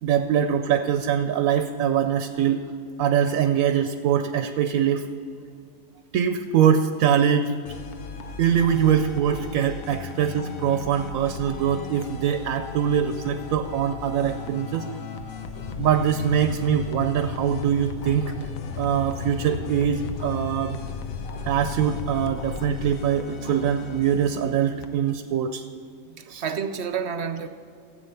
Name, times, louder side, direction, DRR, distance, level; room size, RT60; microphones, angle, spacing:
voice 1, 0.0-2.7 3.0-5.1 6.1-7.5 8.4-14.9 15.8-18.3 18.8-20.8 21.5-25.6 26.3-26.4, right 8 dB, 90° right, 8 dB, 1.1 m, -23 dB
sound 1, 7.7-25.1, left 5 dB, 80° left, 1.2 m, -38 dB
sound 2, 8.5-22.9, left 6 dB, 50° left, 0.8 m, -38 dB
voice 2, 26.2-27.5, right 6 dB, 60° right, 10 dB, 0.8 m, -30 dB
14.0 x 8.5 x 5.7 m, 2.5 s
omnidirectional pair, 1.4 m